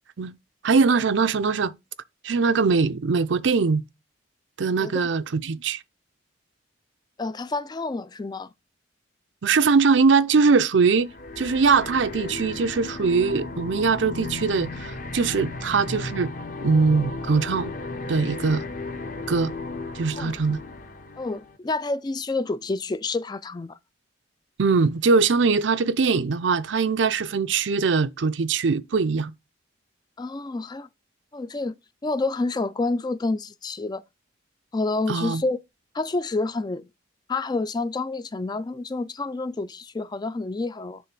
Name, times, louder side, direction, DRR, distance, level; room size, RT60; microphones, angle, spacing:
voice 1, 0.6-1.7 2.2-3.8 4.6-5.8 9.4-16.3 16.6-17.7 18.1-18.6 19.3-19.5 19.9-20.6 24.6-29.3 35.1-35.4, right 4 dB, 65° right, 0.5 m, -21 dB
voice 2, 7.2-8.5 20.2-20.3 21.2-23.8 30.2-30.9 31.3-31.8 32.0-34.0 34.7-35.6 35.9-36.8 37.3-41.0, left 3 dB, 20° left, 0.3 m, -28 dB
sound 1, 11.0-21.6, left 3 dB, 40° left, 1.0 m, -35 dB
6.9 x 3.2 x 5.9 m
head